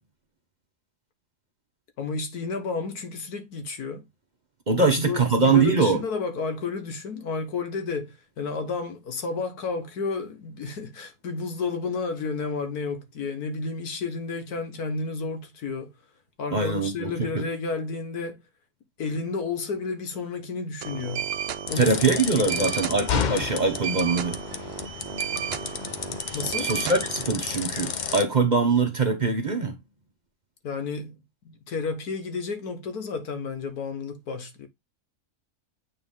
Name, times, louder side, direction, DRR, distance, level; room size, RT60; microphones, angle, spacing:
voice 1, 2.0-4.1 4.8-15.9 16.4-18.4 19.0-21.3 21.7-21.9 22.4-22.7 26.3-26.7 30.6-31.2 31.7-34.7, left 4 dB, 85° left, 1.8 m, -31 dB
voice 2, 4.7-6.0 16.5-17.4 21.8-24.4 26.6-29.8, right 4 dB, 35° right, 1.0 m, -23 dB
sound 1, 20.8-27.4, right 8 dB, 65° right, 0.6 m, -33 dB
sound 2, 21.7-28.2, left 6 dB, 65° left, 0.4 m, -32 dB
8.7 x 3.1 x 3.7 m
omnidirectional pair, 1.6 m